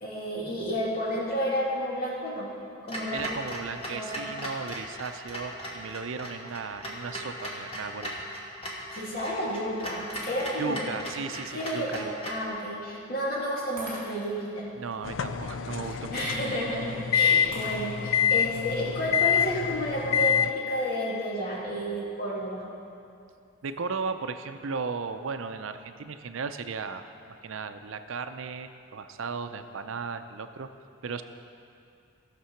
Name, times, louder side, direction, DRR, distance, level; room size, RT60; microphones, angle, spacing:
voice 1, 0.0-2.5 2.8-3.4 3.7-4.3 8.9-10.9 11.5-14.7 15.9-22.6, equal, 45° left, -5 dB, 2.5 m, -31 dB
Clock, 2.9-12.5, equal, 30° left, 1.4 m, -38 dB
voice 2, 3.1-8.1 10.6-12.1 14.8-16.2 23.6-30.7 31.0-31.2, right 5 dB, 75° right, 9 dB, 0.5 m, -36 dB
Shatter, 10.1-10.8 11.4-11.5 13.8-14.5 17.5-18.3, right 2 dB, 25° right, 3.2 m, -44 dB
sound 1, 15.0-20.5, left 8 dB, 70° left, 0.4 m, -26 dB
14.0 x 6.7 x 5.8 m, 2.5 s
head